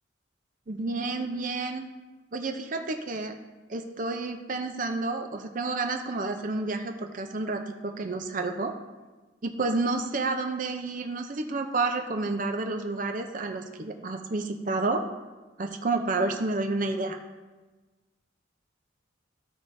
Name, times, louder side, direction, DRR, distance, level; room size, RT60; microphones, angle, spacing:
voice 1, 0.7-1.9 2.3-3.3 3.7-8.7 9.4-15.0 15.6-17.2, right 3 dB, 40° right, 5 dB, 0.5 m, -30 dB
14.5 x 4.9 x 2.6 m, 1.2 s
head